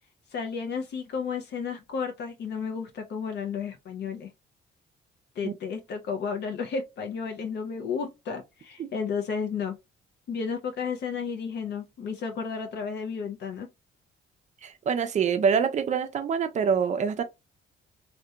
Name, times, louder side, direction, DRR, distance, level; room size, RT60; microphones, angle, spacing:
voice 1, 0.3-4.3 5.4-9.7 10.3-13.7, left 6 dB, 60° left, 0.5 m, -32 dB
voice 2, 14.6-17.2, right 6 dB, 35° right, 0.4 m, -25 dB
2.7 x 2.2 x 2.2 m
cardioid pair, 90°, 20 cm